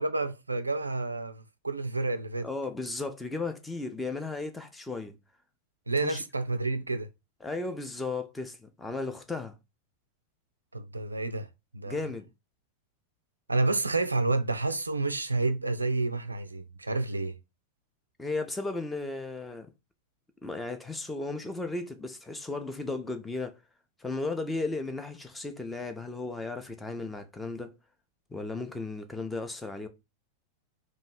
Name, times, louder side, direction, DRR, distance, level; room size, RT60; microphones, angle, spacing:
voice 1, 0.0-2.5 5.9-7.1 10.7-11.5 11.7-12.0 13.5-17.3, right 3 dB, 80° right, 0.3 m, -29 dB
voice 2, 2.4-5.1 6.0-6.2 7.4-9.6 11.9-12.3 18.2-19.7 20.4-23.6 24.0-27.7 28.3-29.9, left 3 dB, 10° left, 0.6 m, -35 dB
3.0 x 2.4 x 4.1 m
figure-of-eight pair, 90°, 0 cm